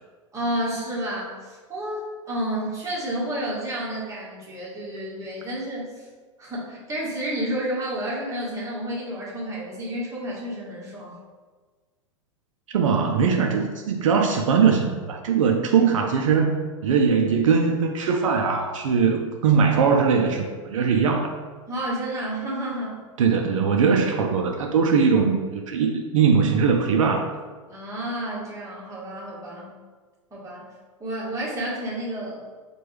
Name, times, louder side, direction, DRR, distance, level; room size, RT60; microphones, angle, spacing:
voice 1, 0.3-6.1 6.4-11.2 21.7-23.0 27.7-29.7 30.3-30.7 31.0-32.4, right 1 dB, 20° right, -5 dB, 1.3 m, -30 dB
voice 2, 12.7-16.6 16.8-21.3 23.2-27.3, right 6 dB, 75° right, 2 dB, 0.4 m, -21 dB
4.4 x 2.3 x 3.1 m, 1.4 s
hypercardioid pair, 100°, 17 cm